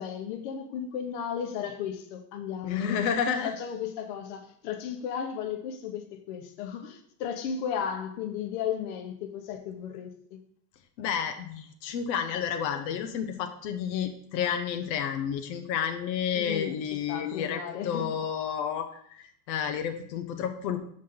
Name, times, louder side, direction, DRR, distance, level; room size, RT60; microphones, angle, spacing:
voice 1, 0.0-10.4 16.3-16.8 17.1-18.0, left 8 dB, 65° left, 1.2 m, -35 dB
voice 2, 2.6-3.5 11.0-20.8, left 8 dB, 85° left, 0.9 m, -31 dB
6.3 x 5.8 x 3.8 m
supercardioid pair, 145°, 49 cm